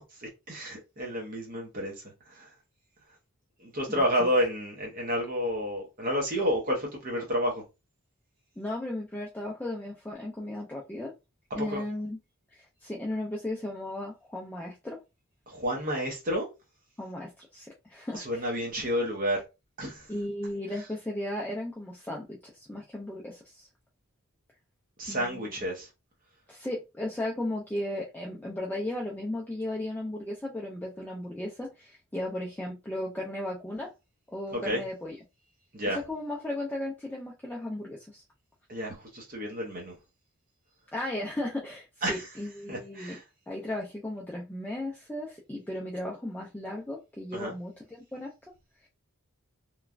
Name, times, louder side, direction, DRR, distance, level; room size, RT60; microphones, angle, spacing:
voice 1, 0.2-1.9 2.3-2.5 3.6-7.6 11.6-11.8 15.5-16.5 18.1-19.4 19.8-20.1 25.0-25.9 34.5-34.8 35.7-36.0 38.7-39.9 42.0-42.3 42.7-43.2 47.3-47.5, equal, 40° right, 0.7 m, -30 dB
voice 2, 8.6-11.1 11.5-12.2 12.5-15.0 17.0-18.5 20.1-23.7 25.1-25.6 26.5-33.9 34.3-35.2 35.9-38.2 40.9-43.2 43.5-48.3, left 1 dB, 10° left, 0.3 m, -35 dB
3.0 x 2.2 x 2.3 m
head